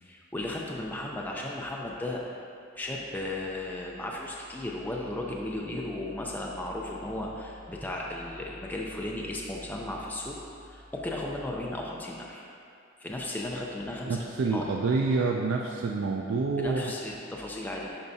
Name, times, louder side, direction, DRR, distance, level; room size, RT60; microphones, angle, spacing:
voice 1, 0.0-2.2 2.8-12.4 13.0-14.2 14.5-14.7 16.6-17.9, left 1 dB, 10° left, -3 dB, 0.5 m, -35 dB
voice 2, 14.1-16.9, right 4 dB, 80° right, 0 dB, 0.4 m, -27 dB
10.5 x 4.6 x 2.7 m, 2.5 s
head